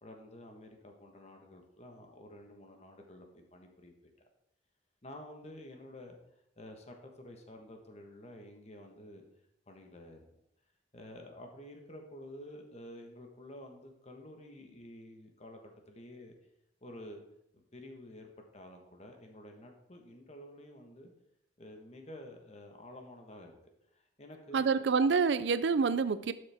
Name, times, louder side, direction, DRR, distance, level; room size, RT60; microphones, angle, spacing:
voice 1, 0.0-3.9 5.0-6.2 6.6-9.2 9.7-10.3 10.9-16.3 16.8-17.2 17.5-21.1 21.6-23.5 23.9-24.8, left 1 dB, 35° left, 3 dB, 1.3 m, -50 dB
voice 2, 24.5-26.3, right 5 dB, 70° right, 13 dB, 0.4 m, -27 dB
12.0 x 6.5 x 3.5 m, 0.81 s
head